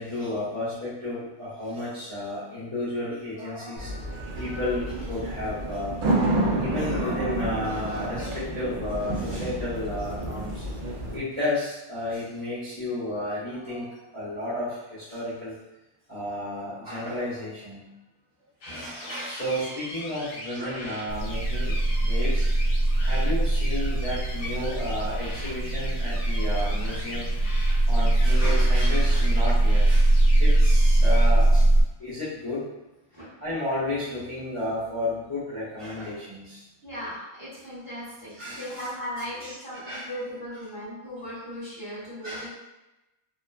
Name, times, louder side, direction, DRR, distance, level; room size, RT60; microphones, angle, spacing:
voice 1, 0.0-10.6 11.1-15.5 16.1-17.9 18.6-21.7 22.0-22.5 23.0-27.3 27.9-31.7 32.0-32.7 33.4-36.6 38.3-38.9 39.4-40.1 42.2-42.5, left 1 dB, 15° left, -12 dB, 0.7 m, -32 dB
sound 1, 3.8-11.2, right 2 dB, 70° right, 0.4 m, -29 dB
sound 2, 18.6-31.3, left 1 dB, 70° left, 1.0 m, -40 dB
sound 3, 21.1-31.8, right 1 dB, 85° left, 1.3 m, -21 dB
voice 2, 36.8-42.5, equal, 20° right, -11 dB, 1.0 m, -37 dB
2.8 x 2.3 x 2.3 m, 0.99 s
omnidirectional pair, 1.5 m